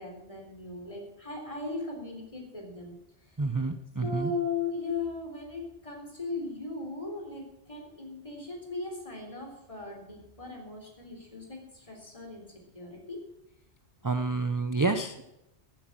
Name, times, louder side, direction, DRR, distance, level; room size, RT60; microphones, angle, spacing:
voice 1, 0.0-3.4 4.0-13.2, left 3 dB, 30° left, 1 dB, 3.9 m, -38 dB
voice 2, 3.4-4.3 14.0-15.2, right 3 dB, 25° right, 9 dB, 0.5 m, -29 dB
13.5 x 9.0 x 7.4 m, 0.90 s
omnidirectional pair, 1.1 m